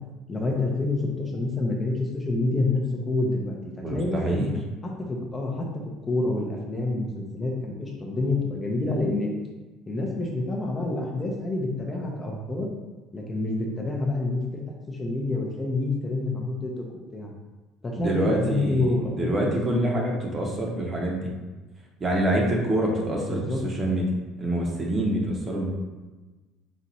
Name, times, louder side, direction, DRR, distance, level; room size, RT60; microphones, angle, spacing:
voice 1, 0.3-3.5 3.9-4.5 4.8-9.3 9.9-12.7 13.1-14.6 14.9-16.8 17.1-17.3 17.8-19.9 23.3-23.6, left 2 dB, 20° left, -1 dB, 0.5 m, -27 dB
voice 2, 3.8-4.5 18.0-21.3 22.0-24.1 24.4-25.7, right 1 dB, 25° right, -1 dB, 0.8 m, -26 dB
4.1 x 2.4 x 4.1 m, 1.2 s
cardioid pair, 135°, 0 cm